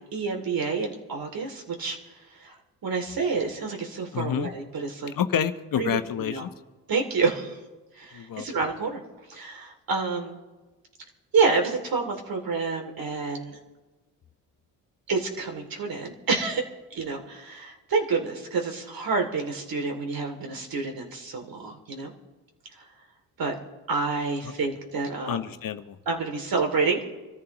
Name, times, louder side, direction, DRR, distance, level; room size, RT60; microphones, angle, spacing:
voice 1, 0.0-2.0 2.4-5.1 5.7-6.4 6.9-7.6 7.9-9.0 9.3-10.4 11.3-13.6 15.1-16.6 16.9-22.1 23.4-23.5 23.9-25.4 26.1-27.1, right 4 dB, 55° right, 3 dB, 2.8 m, -28 dB
voice 2, 4.1-4.5 5.1-6.5 8.1-8.4 25.3-26.0, left 9 dB, 50° left, 10 dB, 1.0 m, -28 dB
25.5 x 14.0 x 3.0 m, 1.2 s
hypercardioid pair, 55°, 43 cm